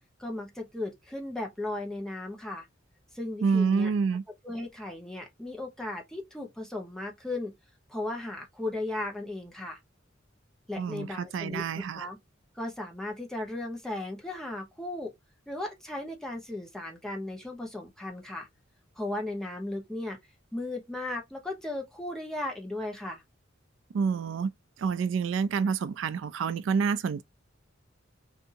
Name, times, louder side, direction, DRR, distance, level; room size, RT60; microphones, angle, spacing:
voice 1, 0.2-2.7 3.1-3.9 4.4-7.5 7.9-9.8 10.7-12.2 12.5-15.1 15.5-18.5 19.0-20.2 20.5-23.2, left 2 dB, 5° left, 1.0 m, -36 dB
voice 2, 3.4-4.2 10.8-12.1 23.9-24.5 24.8-27.2, right 5 dB, 70° right, 0.3 m, -28 dB
3.5 x 2.7 x 2.6 m
head